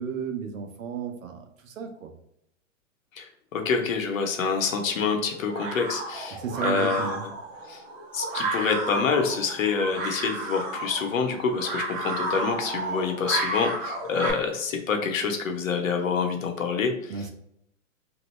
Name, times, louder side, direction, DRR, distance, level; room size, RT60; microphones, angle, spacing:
voice 1, 0.0-2.1 6.4-7.2 17.1-17.3, right 6 dB, 85° right, 6 dB, 0.7 m, -34 dB
voice 2, 3.2-7.3 7.7-7.8 8.1-17.1, left 5 dB, 85° left, 4 dB, 0.8 m, -27 dB
sound 1, 4.4-14.3, right 2 dB, 45° right, 1.1 m, -32 dB
3.0 x 2.6 x 3.1 m, 0.75 s
hypercardioid pair, 120°, 39 cm